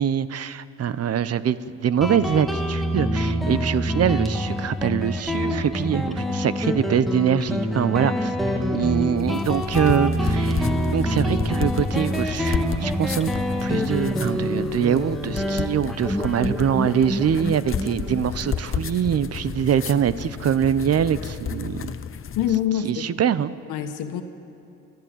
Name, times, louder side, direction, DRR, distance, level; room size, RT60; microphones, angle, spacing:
voice 1, 0.0-8.3 8.7-21.9 22.8-23.5, right 8 dB, 55° right, 16 dB, 0.9 m, -24 dB
Guitar, 2.0-19.2, equal, ahead, 2.0 m, -26 dB
sound 1, 9.2-22.6, left 7 dB, 45° left, 0.9 m, -32 dB
voice 2, 22.3-23.1 23.7-24.2, left 10 dB, 90° left, 7 dB, 1.5 m, -25 dB
29.0 x 13.5 x 9.1 m, 2.7 s
cardioid pair, 90°, 30 cm